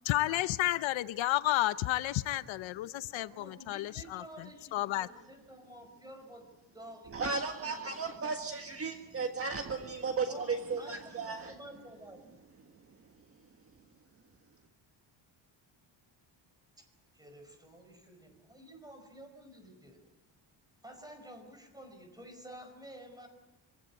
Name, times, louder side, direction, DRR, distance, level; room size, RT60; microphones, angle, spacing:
voice 1, 0.1-5.1, left 15 dB, 75° left, 15 dB, 0.8 m, -32 dB
voice 2, 3.1-7.4 7.6-8.0 10.3-12.2 16.8-16.9 17.1-20.0 20.8-23.3, right 1 dB, 10° right, 6 dB, 4.9 m, -51 dB
voice 3, 7.1-11.5, right 4 dB, 30° right, 5 dB, 1.6 m, -35 dB
25.5 x 16.5 x 9.7 m, 1.1 s
cardioid pair, 165°, 46 cm